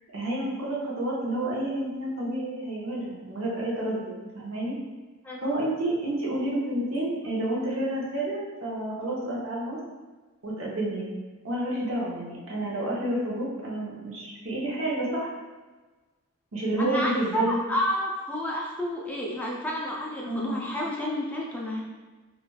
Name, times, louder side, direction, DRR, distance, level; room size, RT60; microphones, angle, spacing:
voice 1, 0.1-4.8 5.4-9.8 10.4-11.1 11.4-15.3 16.5-17.6 20.3-20.6, right 1 dB, 70° right, -5 dB, 0.7 m, -30 dB
voice 2, 16.8-21.8, equal, 10° left, -3 dB, 0.4 m, -30 dB
3.0 x 2.4 x 2.3 m, 1.2 s
head